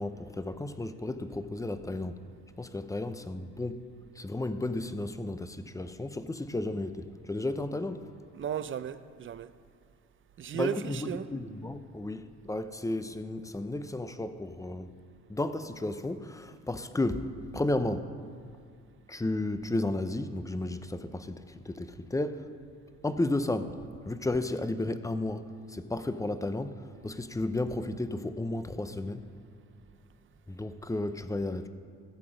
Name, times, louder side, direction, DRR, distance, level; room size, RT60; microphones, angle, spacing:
voice 1, 0.0-2.2 2.6-3.8 4.2-8.1 10.5-14.9 15.3-18.1 19.1-22.5 23.0-29.3 30.5-31.7, left 2 dB, 10° left, 0.6 m, -33 dB
voice 2, 8.3-9.5 10.4-11.3, right 9 dB, 40° right, 0.5 m, -35 dB
14.5 x 7.7 x 5.0 m
cardioid pair, 90°, 30 cm